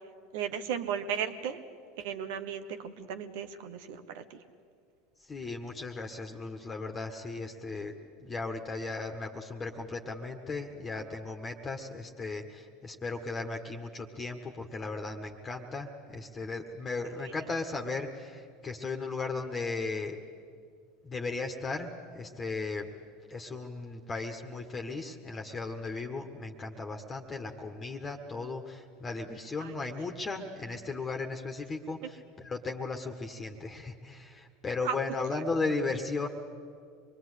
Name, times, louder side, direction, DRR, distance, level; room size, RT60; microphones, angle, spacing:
voice 1, 0.3-1.6 2.0-4.4 29.6-29.7 34.8-35.0 35.6-35.7, right 8 dB, 65° right, 10 dB, 1.4 m, -35 dB
voice 2, 5.2-7.9 8.2-20.2 21.0-22.9 23.3-36.3, left 3 dB, 25° left, 4 dB, 1.7 m, -36 dB
25.0 x 21.5 x 8.3 m, 2.2 s
hypercardioid pair, 80°, 0 cm